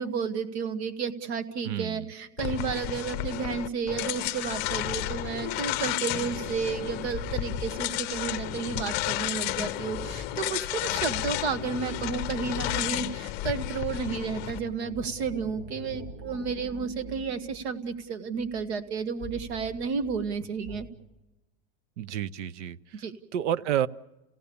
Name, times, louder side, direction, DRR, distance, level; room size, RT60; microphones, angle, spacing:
voice 1, 0.0-20.9 22.9-23.1, right 6 dB, 65° right, 10 dB, 1.6 m, -32 dB
voice 2, 1.6-2.1 22.0-22.8 23.3-23.9, right 10 dB, 80° right, 19 dB, 0.8 m, -29 dB
sound 1, 2.4-14.6, left 15 dB, 30° left, 0.7 m, -32 dB
sound 2, 6.2-13.4 13.7-20.8, equal, 40° right, 6.9 m, -46 dB
30.0 x 16.5 x 7.0 m, 1.0 s
supercardioid pair, 165°, 35 cm